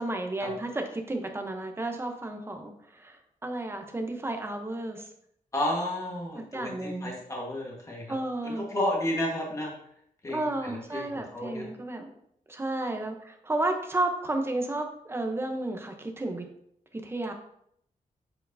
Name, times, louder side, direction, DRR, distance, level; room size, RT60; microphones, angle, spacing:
voice 1, 0.0-5.1 6.5-7.2 8.1-8.7 10.3-12.1 12.5-16.4 16.9-17.3, right 2 dB, 15° right, 4 dB, 0.8 m, -32 dB
voice 2, 5.5-8.2 8.4-9.7 10.2-11.7, left 1 dB, 20° left, -2 dB, 1.4 m, -32 dB
7.8 x 4.4 x 2.7 m, 0.71 s
wide cardioid pair, 140°, 15 cm